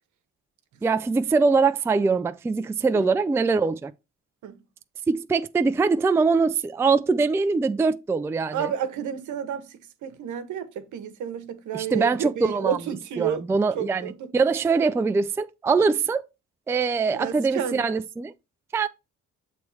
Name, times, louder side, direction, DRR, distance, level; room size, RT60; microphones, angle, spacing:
voice 1, 0.8-3.9 5.1-8.7 11.7-12.8 13.2-16.2 16.7-18.3 18.7-18.9, right 4 dB, 10° right, 0.3 m, -23 dB
voice 2, 8.5-13.4 13.7-14.3 17.1-17.9, right 9 dB, 75° right, 1.0 m, -31 dB
6.9 x 3.1 x 4.7 m
cardioid pair, 90°, 30 cm